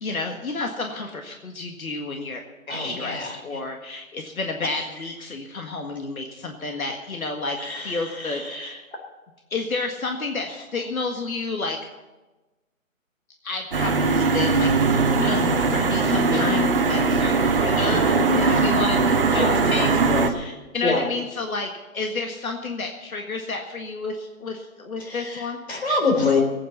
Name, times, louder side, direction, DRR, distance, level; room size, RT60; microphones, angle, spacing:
voice 1, 0.0-2.4 2.7-8.8 9.5-11.8 13.4-15.4 15.7-20.0 20.3-25.6, left 3 dB, 85° left, 3 dB, 1.8 m, -31 dB
voice 2, 2.7-3.6 4.6-4.8 7.6-8.7 15.3-15.6 16.3-16.5 17.7-18.6 19.3-20.2 20.8-21.0 25.0-26.4, left 3 dB, 50° left, 2 dB, 3.8 m, -27 dB
sound 1, 13.7-20.3, right 4 dB, 40° right, 1.1 m, -20 dB
17.0 x 9.1 x 7.1 m, 1.1 s
hypercardioid pair, 170°, 41 cm